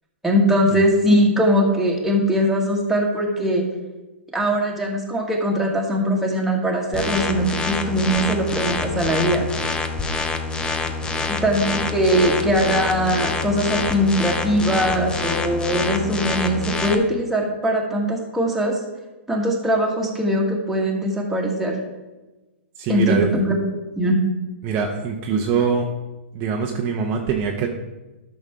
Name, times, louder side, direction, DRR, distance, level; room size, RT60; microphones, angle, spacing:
voice 1, 0.2-3.6 4.3-9.4 11.4-18.8 19.3-21.8 22.9-23.6 24.0-24.2, equal, 5° right, -3 dB, 1.9 m, -21 dB
sound 1, 6.9-16.9, left 3 dB, 15° left, 0.7 m, -26 dB
voice 2, 22.8-23.3 24.6-25.8 26.3-27.7, right 6 dB, 35° right, 1 dB, 0.9 m, -23 dB
12.0 x 6.2 x 3.7 m, 1.1 s
hypercardioid pair, 130°, 7 cm